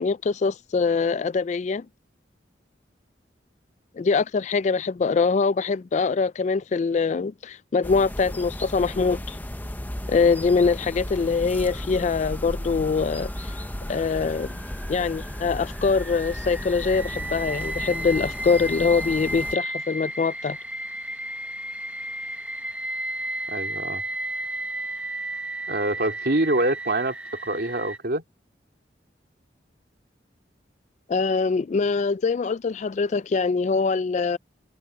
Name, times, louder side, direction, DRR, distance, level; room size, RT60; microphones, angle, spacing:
voice 1, 0.0-1.9 4.0-9.4 10.1-13.6 13.9-14.5 14.9-20.6 31.1-34.4, left 4 dB, 40° left, 0.3 m, -23 dB
sound 1, 7.8-19.6, left 1 dB, 10° left, 0.8 m, -35 dB
sound 2, 11.5-28.0, right 1 dB, 5° right, 1.2 m, -34 dB
voice 2, 23.5-24.0 25.7-27.2 27.4-28.2, right 1 dB, 60° right, 3.2 m, -25 dB
head